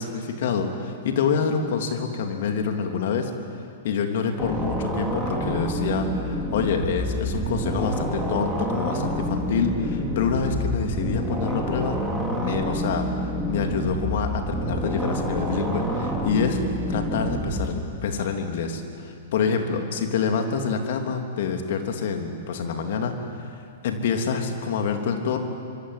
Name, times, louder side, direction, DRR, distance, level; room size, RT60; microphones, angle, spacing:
voice 1, 0.0-3.3 3.8-12.0 12.3-16.6 16.9-25.4, left 6 dB, 55° left, 4 dB, 3.2 m, -27 dB
sound 1, 4.4-17.7, equal, ahead, 5.1 m, -28 dB
25.5 x 24.5 x 9.6 m, 2.4 s
figure-of-eight pair, 105°, 0 cm